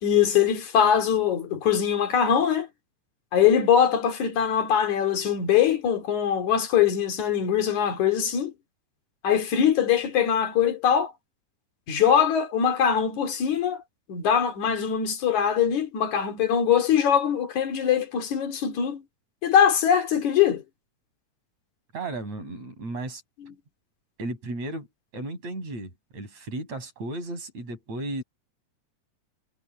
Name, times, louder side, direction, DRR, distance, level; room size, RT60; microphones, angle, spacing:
voice 1, 0.0-2.7 3.3-8.5 9.2-11.1 11.9-13.8 14.1-19.0 19.4-20.6, left 8 dB, 75° left, 3.8 m, -22 dB
voice 2, 21.9-23.2 24.2-24.9 25.1-28.2, right 2 dB, 65° right, 8.1 m, -34 dB
omnidirectional pair, 3.4 m